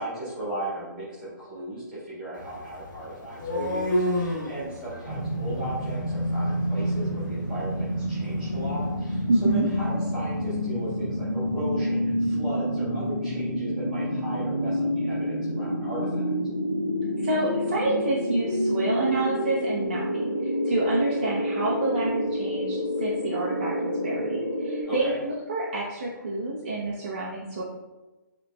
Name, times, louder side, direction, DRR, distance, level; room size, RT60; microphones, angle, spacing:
voice 1, 0.0-16.2 24.8-25.2, right 1 dB, 5° right, -10 dB, 1.3 m, -36 dB
sound 1, 2.3-10.3, left 1 dB, 70° left, 1.2 m, -34 dB
sound 2, 5.0-24.8, equal, 20° left, 1.3 m, -28 dB
voice 2, 9.3-9.7 17.2-27.6, right 2 dB, 30° right, -5 dB, 0.5 m, -28 dB
7.6 x 3.0 x 2.2 m, 1.1 s
hypercardioid pair, 180°, 11 cm